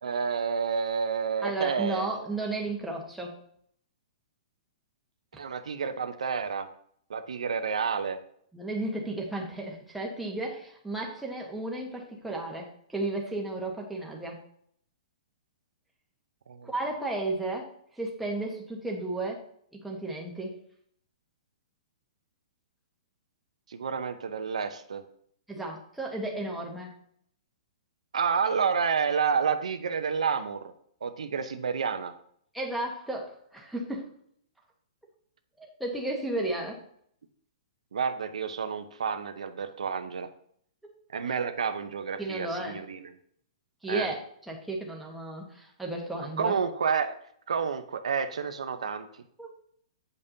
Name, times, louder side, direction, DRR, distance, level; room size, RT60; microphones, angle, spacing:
voice 1, 0.0-2.2 5.4-6.7 7.1-8.2 16.5-16.7 23.7-25.0 28.1-30.7 31.0-32.1 37.9-40.3 41.1-43.0 43.9-44.1 46.4-47.2 47.5-49.1, right 6 dB, 90° right, 8 dB, 0.7 m, -29 dB
voice 2, 1.4-3.4 8.5-14.4 16.6-17.7 18.0-19.4 19.8-20.5 25.5-27.0 32.5-34.1 35.6-36.8 42.2-42.8 43.8-44.2 44.5-46.6 49.4-49.5, right 2 dB, ahead, -2 dB, 1.2 m, -33 dB
8.3 x 5.3 x 2.8 m, 0.65 s
hypercardioid pair, 150°, 3 cm